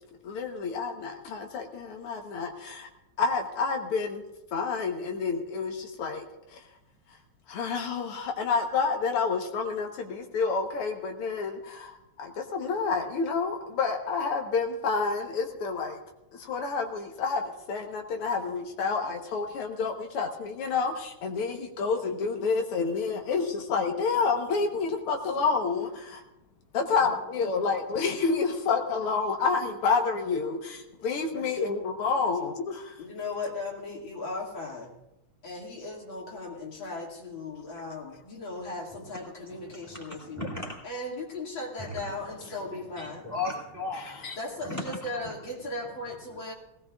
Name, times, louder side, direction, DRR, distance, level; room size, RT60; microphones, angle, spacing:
voice 1, 0.2-2.9 3.2-4.2 4.5-6.3 7.5-16.0 16.4-26.2 26.7-32.9 44.2-44.3, left 4 dB, 85° left, 3 dB, 2.1 m, -29 dB
voice 2, 33.0-34.9 35.4-40.5 40.8-43.2 44.4-46.5, left 2 dB, 60° left, -2 dB, 2.9 m, -37 dB
voice 3, 39.5-40.8 41.8-42.1 43.0-44.3 44.6-45.0, left 2 dB, 10° right, -4 dB, 2.0 m, -36 dB
19.5 x 16.5 x 2.4 m, 0.91 s
omnidirectional pair, 2.4 m